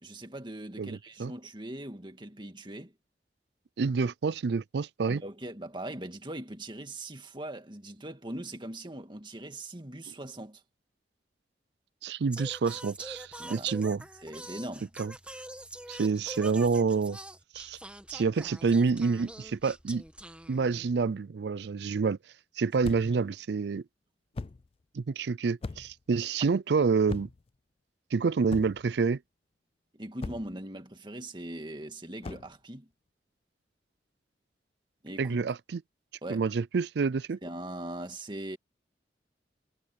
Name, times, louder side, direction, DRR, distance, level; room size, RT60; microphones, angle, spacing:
voice 1, 0.0-2.9 5.1-10.6 13.4-13.7 14.2-14.9 23.0-23.2 29.9-32.9 35.0-35.4 36.2-36.4 37.4-38.6, right 1 dB, 25° right, 2.1 m, -40 dB
voice 2, 0.8-1.3 3.8-5.2 12.0-14.0 15.0-15.1 15.9-17.2 17.5-17.8 18.1-20.0 20.5-22.2 22.6-23.8 24.9-27.3 28.1-29.2 35.2-35.8 36.3-37.4, right 5 dB, 65° right, 0.4 m, -28 dB
Singing, 12.3-21.0, right 1 dB, 5° right, 1.9 m, -45 dB
sound 1, 22.8-23.2 24.3-24.7 25.6-26.0 27.1-27.5 28.5-28.9 30.2-30.6 32.2-32.5, left 3 dB, 35° left, 0.3 m, -39 dB
head